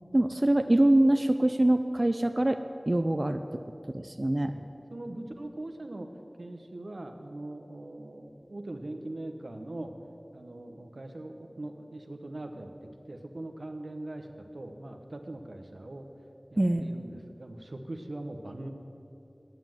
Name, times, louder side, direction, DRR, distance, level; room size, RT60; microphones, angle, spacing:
voice 1, 0.1-3.6 3.9-4.5 16.6-16.8, right 1 dB, 45° right, 8 dB, 0.4 m, -24 dB
voice 2, 4.9-6.1 6.4-9.9 10.3-16.1 16.5-18.7, right 1 dB, 90° right, 5 dB, 0.9 m, -41 dB
9.4 x 9.1 x 7.7 m, 2.8 s
wide cardioid pair, 45°, 0 cm